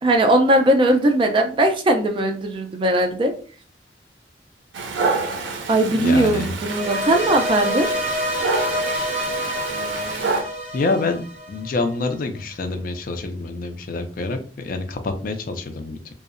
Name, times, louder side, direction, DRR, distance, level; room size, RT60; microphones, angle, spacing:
voice 1, 0.0-3.3 5.7-7.9, right 1 dB, 30° right, 5 dB, 0.3 m, -19 dB
Dog, 4.7-10.4, right 4 dB, 90° right, 0.5 m, -28 dB
voice 2, 6.0-6.5 10.0-10.3 10.7-11.2 11.5-16.1, left 3 dB, 50° left, 7 dB, 0.4 m, -26 dB
sound 1, 6.6-11.9, equal, 10° right, 0.9 m, -27 dB
2.6 x 2.0 x 2.4 m, 0.40 s
head